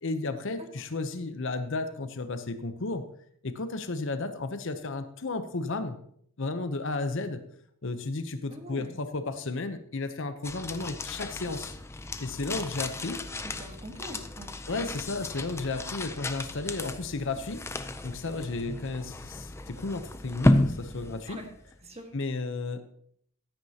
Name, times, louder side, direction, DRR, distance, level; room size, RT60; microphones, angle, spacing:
voice 1, 0.0-3.1 3.4-6.0 6.4-7.4 7.8-11.8 12.2-13.2 14.7-17.6 18.0-21.4 22.1-22.8, left 3 dB, 55° left, 10 dB, 0.8 m, -33 dB
voice 2, 8.5-8.9 13.4-14.5 21.3-21.5 21.8-22.1, equal, 30° right, 4 dB, 1.5 m, -43 dB
sound 1, 10.4-21.8, left 1 dB, 10° left, 0.4 m, -32 dB
14.5 x 9.5 x 2.9 m, 0.66 s
head